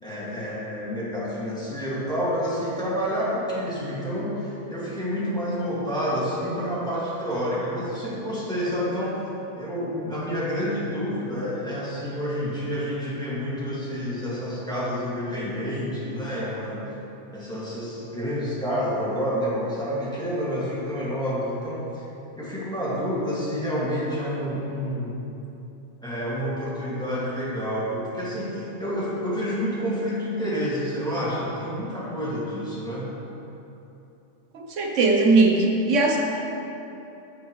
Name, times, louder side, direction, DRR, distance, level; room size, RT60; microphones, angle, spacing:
voice 1, 0.0-9.3 9.6-16.9 17.3-22.0 22.4-25.2 26.0-33.1, equal, 5° left, -9 dB, 2.0 m, -29 dB
voice 2, 34.5-36.2, right 3 dB, 80° right, 1 dB, 1.1 m, -19 dB
14.5 x 5.8 x 3.2 m, 2.9 s
omnidirectional pair, 1.3 m